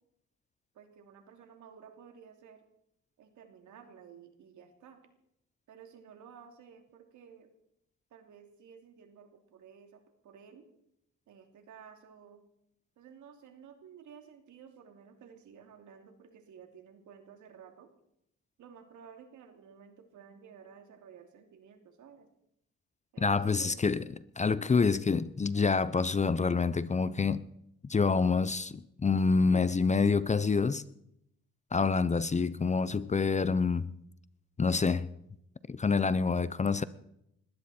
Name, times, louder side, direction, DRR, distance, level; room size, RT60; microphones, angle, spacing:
voice 1, 0.7-2.6 3.2-5.0 5.7-7.5 8.1-10.7 11.3-12.4 13.0-17.9 18.6-22.3 23.1-23.8, right 7 dB, 75° right, 2.9 m, -54 dB
voice 2, 23.2-24.0 24.4-27.4 27.9-30.8 31.7-34.0 34.6-35.1 35.7-36.8, left 4 dB, 25° left, 0.7 m, -27 dB
21.0 x 15.5 x 4.4 m
cardioid pair, 90°, 30 cm